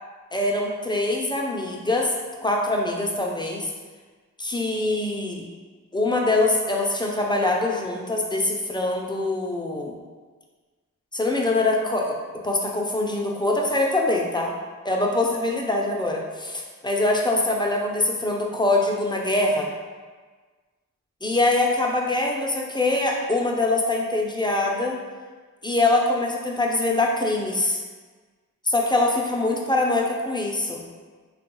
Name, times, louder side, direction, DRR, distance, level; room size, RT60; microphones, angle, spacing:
voice 1, 0.3-2.1 2.4-3.7 4.4-5.4 5.9-10.0 11.1-12.2 12.4-14.5 14.8-19.7 21.2-25.0 25.6-27.8 28.6-30.8, left 2 dB, 15° left, -1 dB, 0.4 m, -23 dB
3.5 x 2.2 x 3.0 m, 1.4 s
wide cardioid pair, 60°, 32 cm